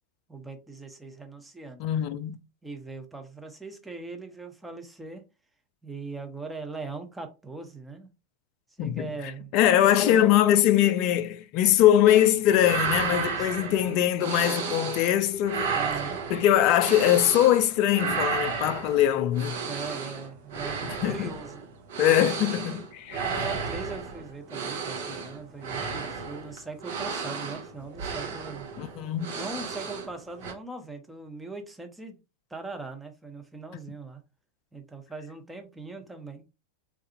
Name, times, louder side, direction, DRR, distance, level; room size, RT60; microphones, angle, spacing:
voice 1, 0.3-1.8 2.6-5.2 5.8-8.1 8.8-9.5 10.0-10.3 13.1-13.9 15.7-16.2 19.6-21.7 23.1-28.7 29.3-32.2 32.5-34.2 34.7-36.4, right 3 dB, 5° right, 0.6 m, -40 dB
voice 2, 1.8-2.4 8.8-9.1 9.5-15.7 16.3-19.6 20.9-21.3 22.0-23.2 28.8-29.3, left 11 dB, 40° left, 0.3 m, -22 dB
sound 1, 12.1-12.3 12.5-15.1 15.4-17.6 17.9-30.1 30.4-30.5, right 5 dB, 55° right, 0.7 m, -33 dB
3.2 x 2.4 x 2.8 m
figure-of-eight pair, 90°, 0 cm